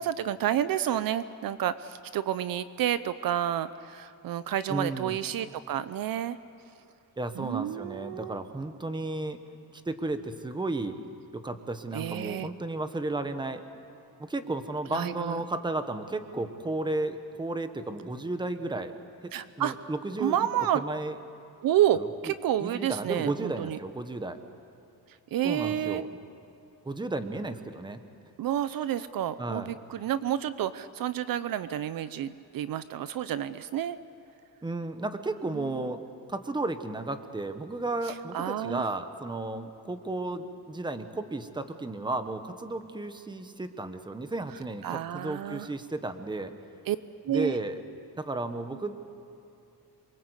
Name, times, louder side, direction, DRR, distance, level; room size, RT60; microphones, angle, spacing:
voice 1, 0.0-6.4 7.4-8.4 11.9-12.5 14.9-15.4 19.3-19.7 20.2-20.8 21.6-23.8 25.3-26.1 28.4-34.0 35.5-35.8 38.1-38.9 44.8-45.7 46.9-47.0 47.2-47.6, right 11 dB, 65° right, 14 dB, 0.7 m, -30 dB
voice 2, 4.7-5.2 7.2-9.4 9.8-11.0 11.3-13.6 14.2-18.9 19.2-20.5 20.7-21.2 22.0-22.1 22.6-24.4 25.4-26.1 26.8-28.0 29.4-29.7 34.6-36.0 36.3-46.5 47.3-47.8 48.2-49.0, right 2 dB, 10° right, 8 dB, 1.3 m, -33 dB
27.5 x 23.5 x 8.2 m, 2.7 s
cardioid pair, 150°, 38 cm